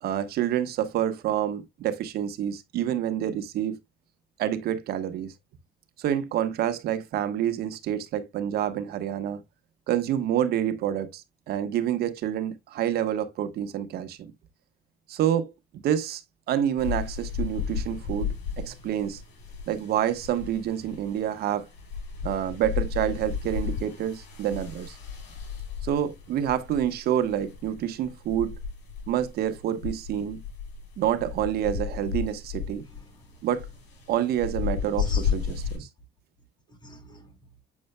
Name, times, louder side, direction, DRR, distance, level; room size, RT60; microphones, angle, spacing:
voice 1, 0.0-3.8 4.4-5.3 6.0-9.4 9.9-14.3 15.1-16.2 16.5-19.2 19.7-21.7 22.2-25.0 25.8-28.6 29.1-30.4 31.0-32.8 33.4-33.7 34.1-35.4 35.7-35.9, right 10 dB, 70° right, 1.2 m, -28 dB
sound 1, 16.8-35.8, left 7 dB, 85° left, 5.2 m, -34 dB
voice 2, 32.8-33.4 35.0-35.8 36.7-37.4, left 1 dB, 25° left, 2.2 m, -45 dB
8.5 x 6.4 x 2.2 m
cardioid pair, 110°, 17 cm